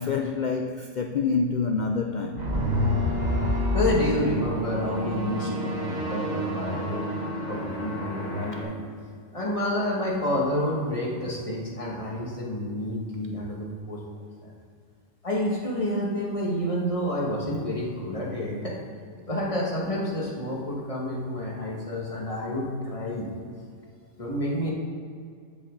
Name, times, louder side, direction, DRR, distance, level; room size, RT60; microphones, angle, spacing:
voice 1, 0.0-2.5 14.1-14.3, left 4 dB, 90° left, 4 dB, 0.4 m, -27 dB
sound 1, 2.4-8.6, left 1 dB, 30° right, 1.8 m, -28 dB
voice 2, 3.7-7.1 7.5-8.7 9.3-14.0 14.4-14.5 15.2-18.8 19.3-23.3 24.2-24.7, left 1 dB, 25° left, -4 dB, 1.8 m, -29 dB
13.5 x 6.2 x 4.0 m, 2.2 s
omnidirectional pair, 1.5 m